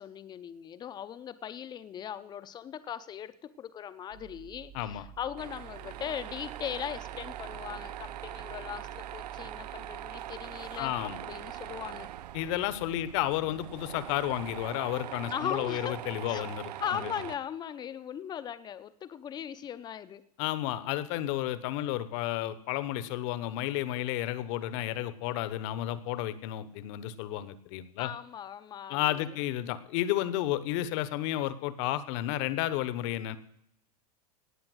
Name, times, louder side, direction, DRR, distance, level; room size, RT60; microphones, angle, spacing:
voice 1, 0.0-12.1 15.3-16.0 16.3-16.4 16.8-20.2 28.0-29.4, left 9 dB, 20° left, 14 dB, 0.8 m, -39 dB
sound 1, 4.1-14.7, right 9 dB, 40° right, 0.7 m, -50 dB
voice 2, 4.7-5.0 10.8-11.2 12.3-16.6 16.9-17.1 20.4-28.1 28.9-33.4, left 13 dB, 50° left, 16 dB, 1.2 m, -32 dB
Tools, 5.4-17.4, right 12 dB, 85° right, 0.6 m, -42 dB
18.0 x 7.1 x 8.0 m, 0.75 s
supercardioid pair, 135°, 20 cm